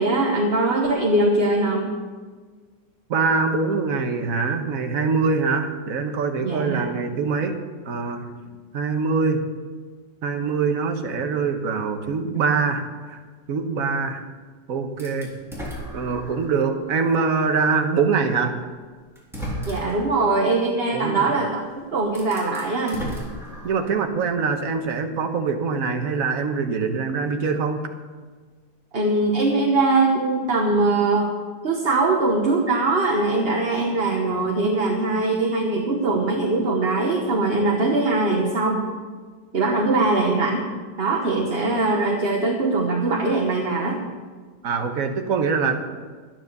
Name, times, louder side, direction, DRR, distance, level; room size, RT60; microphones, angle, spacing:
voice 1, 0.0-1.9 6.4-6.9 19.7-21.6 21.9-23.0 28.9-31.3 31.6-38.9 39.5-40.7 41.0-44.1, right 2 dB, 40° right, 0 dB, 1.2 m, -21 dB
voice 2, 3.1-7.5 7.8-8.3 8.7-9.4 10.2-13.2 13.5-14.2 14.7-15.3 15.9-18.6 20.9-21.4 23.6-27.9 44.6-45.8, right 5 dB, 55° right, 5 dB, 1.5 m, -24 dB
sound 1, 15.0-16.6 17.2-17.3 18.5-18.6 19.2-20.1 21.6-21.7 22.1-24.0, equal, ahead, 3.5 m, -34 dB
12.0 x 9.8 x 6.6 m, 1.5 s
omnidirectional pair, 1.9 m